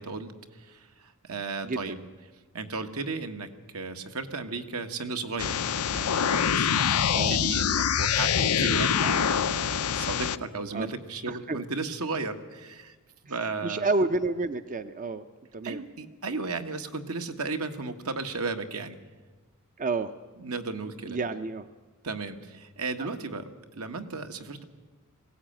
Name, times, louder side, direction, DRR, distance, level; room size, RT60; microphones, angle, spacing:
voice 1, 0.0-2.0 2.5-5.6 5.9-13.0 13.2-13.9 15.6-19.0 20.4-21.2 22.0-24.6, right 3 dB, 75° right, 6 dB, 1.6 m, -35 dB
voice 2, 1.6-2.0 7.1-7.4 10.7-10.9 11.3-11.6 13.3-15.3 15.5-15.8 19.8-20.1 21.1-21.7 23.0-23.1, right 3 dB, 35° right, 10 dB, 0.6 m, -30 dB
sound 1, 5.4-10.4, left 8 dB, 85° left, 0.6 m, -25 dB
21.0 x 16.5 x 8.9 m, 1.3 s
head